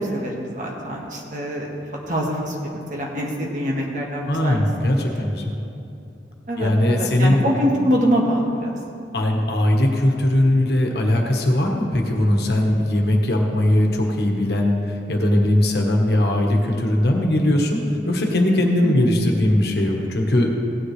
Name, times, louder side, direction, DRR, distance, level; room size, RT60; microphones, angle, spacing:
voice 1, 0.1-1.7 2.1-4.6 6.5-8.7 18.8-19.2, equal, 45° right, -1 dB, 1.6 m, -24 dB
voice 2, 4.3-5.5 6.6-7.4 9.1-20.5, left 1 dB, 65° left, 1 dB, 1.4 m, -19 dB
16.5 x 9.7 x 3.3 m, 2.7 s
head